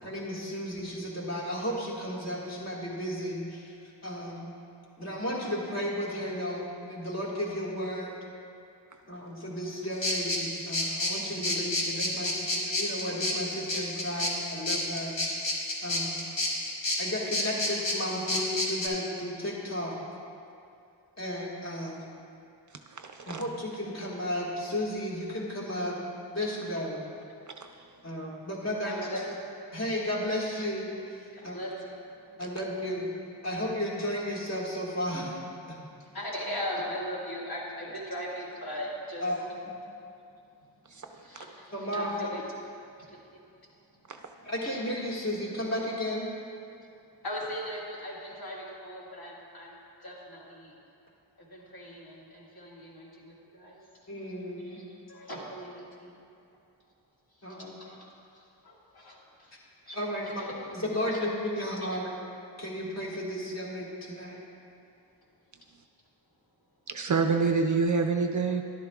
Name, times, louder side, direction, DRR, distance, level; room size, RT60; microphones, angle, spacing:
voice 1, 0.0-3.7 4.0-4.5 5.0-8.2 9.1-15.1 15.8-16.2 17.0-20.0 21.2-22.0 23.3-26.0 26.3-27.0 28.0-29.1 29.7-30.9 31.4-31.6 32.4-33.1 33.4-35.3 35.7-35.8 39.2-39.4 41.7-42.1 44.4-46.3 54.1-54.8 57.4-57.7 59.9-60.5 60.7-62.1 62.6-64.4, equal, 35° left, -5 dB, 1.8 m, -33 dB
sound 1, 10.0-18.9, left 2 dB, 80° left, 1.7 m, -30 dB
voice 2, 22.9-23.4 27.6-27.7 40.9-41.1 44.1-44.2 66.9-68.6, right 4 dB, 45° right, 5 dB, 0.4 m, -27 dB
voice 3, 28.8-29.3 31.4-31.9 32.3-32.4 36.0-39.2 41.2-42.4 44.6-44.7 47.2-49.7 50.0-50.7 51.4-53.8 54.6-54.8 55.1-56.2 57.5-58.0 58.4-59.5 59.9-60.0 60.2-60.5 61.1-61.3, equal, 55° left, -5 dB, 2.0 m, -39 dB
13.0 x 11.5 x 2.3 m, 2.6 s
wide cardioid pair, 165°, 43 cm